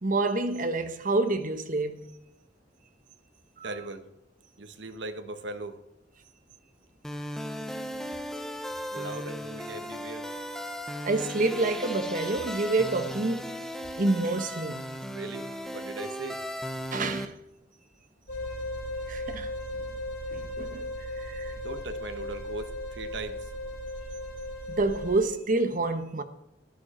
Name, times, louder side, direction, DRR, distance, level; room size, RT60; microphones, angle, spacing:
voice 1, 0.0-2.1 3.6-3.7 11.0-13.6 14.0-14.9 16.9-17.3 19.1-19.5 20.3-21.5 24.7-26.2, right 2 dB, 45° right, 1.1 m, -28 dB
voice 2, 3.6-4.1 4.6-5.8 8.9-10.3 15.1-16.4 21.6-23.5, right 2 dB, 70° right, 1.3 m, -39 dB
sound 1, 7.0-17.3, equal, 5° left, 0.9 m, -36 dB
sound 2, 18.3-25.2, left 1 dB, 60° left, 3.9 m, -36 dB
12.5 x 11.5 x 4.3 m
head